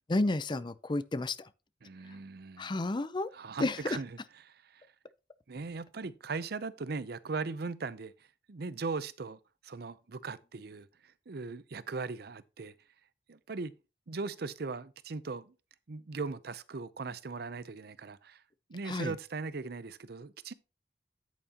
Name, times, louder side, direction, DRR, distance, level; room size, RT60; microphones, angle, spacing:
voice 1, 0.1-1.5 2.6-3.3 3.6-4.0 18.9-19.1, left 2 dB, 25° left, 0.5 m, -31 dB
voice 2, 1.8-2.7 3.3-4.2 4.4-4.9 5.5-8.1 8.5-12.7 13.3-13.7 14.1-15.5 15.9-18.4 18.7-20.5, right 4 dB, 60° right, 0.6 m, -39 dB
9.4 x 8.6 x 2.9 m
head